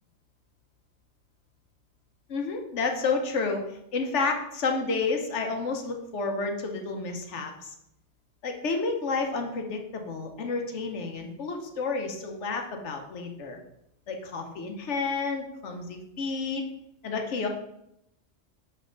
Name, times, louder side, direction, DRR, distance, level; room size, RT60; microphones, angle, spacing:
voice 1, 2.3-3.6 3.9-7.7 8.4-13.6 14.1-16.6 17.0-17.5, left 4 dB, 80° left, 3 dB, 1.2 m, -30 dB
5.6 x 5.4 x 3.8 m, 0.82 s
omnidirectional pair, 1.2 m